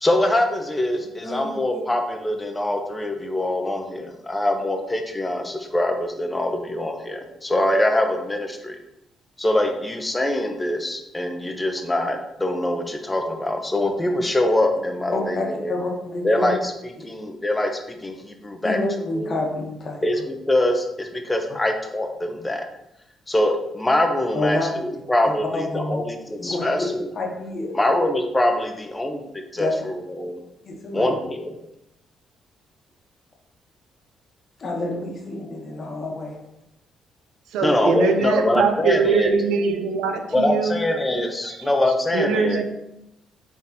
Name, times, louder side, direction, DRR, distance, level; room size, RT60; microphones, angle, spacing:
voice 1, 0.0-8.8 9.4-15.7 16.2-18.8 19.1-19.3 20.0-22.6 23.3-27.1 27.7-29.2 29.5-30.4 30.9-31.5 37.6-39.5 40.3-42.6, left 1 dB, 15° left, 4 dB, 0.6 m, -23 dB
voice 2, 1.2-1.8 15.1-16.5 18.6-20.0 24.3-24.7 25.2-26.0 26.4-26.9 27.1-27.8 29.6-29.7 30.6-31.1 34.6-36.4, left 2 dB, 45° left, 0 dB, 0.9 m, -28 dB
voice 3, 37.5-40.8 41.4-41.6 42.1-42.6, right 5 dB, 90° right, 6 dB, 0.4 m, -22 dB
3.8 x 3.5 x 2.7 m, 0.86 s
cardioid pair, 90°, 0 cm